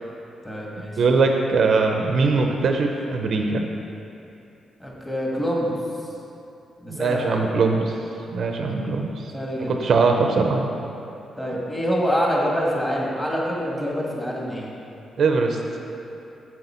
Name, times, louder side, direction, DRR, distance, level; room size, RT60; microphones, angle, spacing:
voice 1, 0.4-0.9 4.8-5.7 6.8-7.4 9.3-9.7 11.4-14.7, equal, 15° left, -4 dB, 1.4 m, -25 dB
voice 2, 1.0-3.7 6.9-8.0 8.3-9.3 9.6-10.7 15.2-15.6, right 4 dB, 50° right, 3 dB, 0.5 m, -21 dB
7.9 x 7.4 x 4.3 m, 2.8 s
wide cardioid pair, 170°, 0 cm